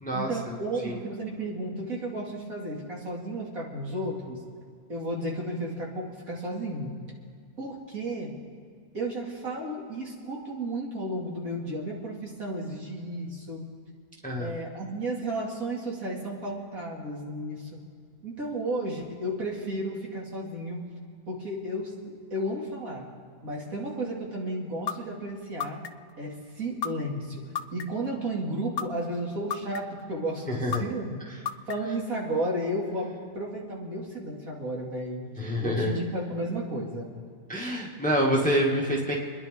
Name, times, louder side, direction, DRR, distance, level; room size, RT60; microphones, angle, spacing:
voice 1, 0.1-4.4 4.9-7.0 7.6-8.3 8.9-13.7 14.4-17.7 18.2-20.8 21.3-23.1 23.4-25.8 26.2-31.2 31.7-35.3 35.6-37.1, right 1 dB, 55° right, -3 dB, 2.7 m, -33 dB
voice 2, 14.2-14.6 30.5-30.8 35.4-36.0 37.5-39.1, equal, 5° left, -3 dB, 1.8 m, -26 dB
sound 1, 24.9-25.0 25.6-26.1 26.8-26.9 27.5-28.1 28.8-28.9 29.5-30.0 30.7-30.8 31.5-32.0, left 8 dB, 90° left, 0.5 m, -30 dB
28.0 x 10.5 x 3.6 m, 2.2 s
omnidirectional pair, 1.8 m